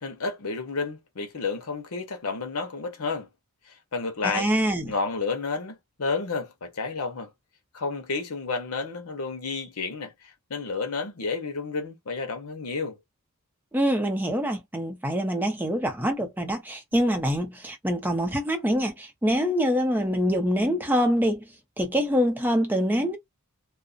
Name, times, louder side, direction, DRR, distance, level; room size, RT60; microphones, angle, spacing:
voice 1, 0.0-3.3 3.7-4.5 4.9-7.3 7.7-13.0, left 4 dB, 80° left, 0.9 m, -31 dB
voice 2, 4.2-4.9 13.7-21.5 21.8-23.2, equal, 10° right, 0.6 m, -25 dB
2.5 x 2.0 x 2.4 m
head